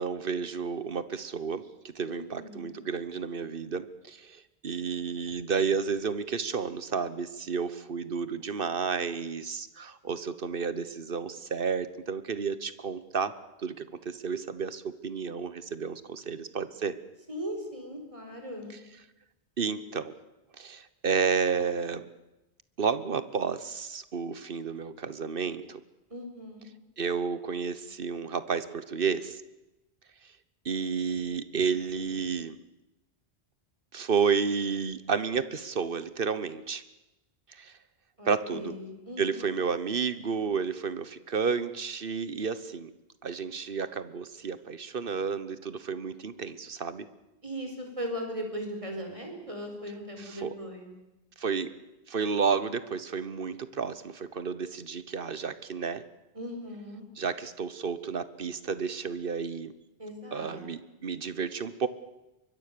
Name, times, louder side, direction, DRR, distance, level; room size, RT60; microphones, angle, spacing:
voice 1, 0.0-13.3 13.6-17.0 19.6-20.1 20.6-22.0 22.8-25.8 27.0-29.4 30.6-32.6 33.9-36.8 37.5-37.7 38.2-38.7 39.2-42.9 43.2-47.0 50.2-50.5 51.4-51.7 52.1-56.0 57.2-59.7 60.3-61.9, right 5 dB, 55° right, 14 dB, 1.3 m, -31 dB
voice 2, 2.1-2.7 17.3-18.7 26.1-26.7 38.2-39.4 47.4-50.9 56.3-57.0 60.0-60.6, equal, 30° right, 3 dB, 4.9 m, -38 dB
24.0 x 22.0 x 6.8 m, 0.99 s
omnidirectional pair, 1.1 m